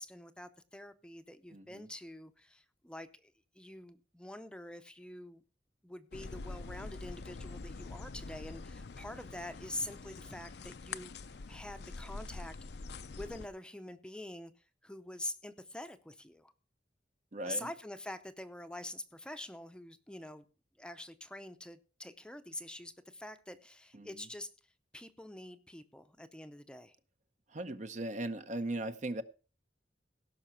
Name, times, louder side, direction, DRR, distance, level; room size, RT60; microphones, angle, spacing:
voice 1, 0.0-5.4 5.8-11.1 11.5-12.5 13.1-14.5 14.8-16.5 17.4-20.5 20.8-24.5 24.9-26.9, left 1 dB, 5° left, 0.7 m, -45 dB
voice 2, 1.5-1.9 17.3-17.7 23.9-24.3 27.5-29.2, right 1 dB, 45° right, 0.8 m, -38 dB
sound 1, 6.1-13.5, left 3 dB, 65° left, 0.6 m, -45 dB
17.0 x 5.8 x 5.7 m
head